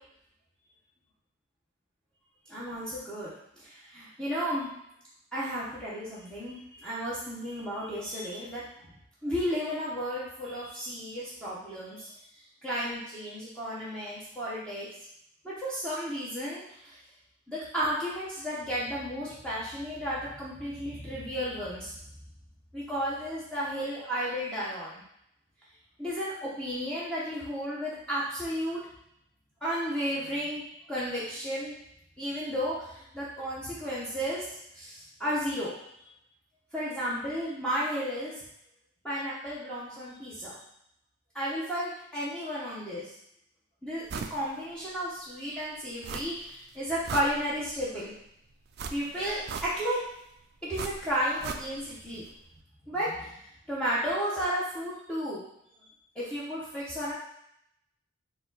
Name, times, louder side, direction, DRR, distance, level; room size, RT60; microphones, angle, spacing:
voice 1, 2.5-3.3 3.6-4.7 5.3-8.6 9.2-12.1 12.6-14.9 15.4-17.0 17.5-21.9 22.7-25.0 26.0-28.8 29.6-30.6 30.9-31.8 32.2-34.4 34.8-35.7 36.7-38.3 39.0-40.6 41.3-43.0 43.8-48.1 48.9-50.0 50.6-52.2 52.9-53.3 53.7-55.4 56.2-57.1, equal, 5° left, -9 dB, 0.8 m, -33 dB
sound 1, 44.1-44.4 44.8-44.9 46.0-46.5 46.9-47.8 48.8-50.0 50.7-52.0 52.3-52.4, right 5 dB, 50° right, 0.3 m, -38 dB
4.7 x 2.4 x 3.9 m, 0.75 s
head